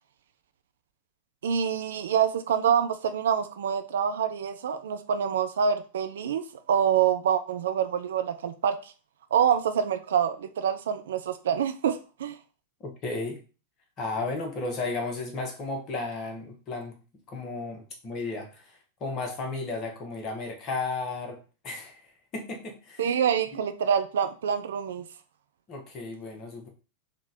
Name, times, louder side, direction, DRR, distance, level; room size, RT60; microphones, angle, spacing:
voice 1, 1.4-8.8 9.3-12.4 23.0-25.1, right 8 dB, 60° right, 0.4 m, -26 dB
voice 2, 13.0-13.4 14.0-17.0 17.3-21.4 21.6-22.0 22.3-23.1 25.7-26.7, left 3 dB, 35° left, 1.1 m, -34 dB
3.7 x 2.4 x 4.2 m
figure-of-eight pair, 90°, 0 cm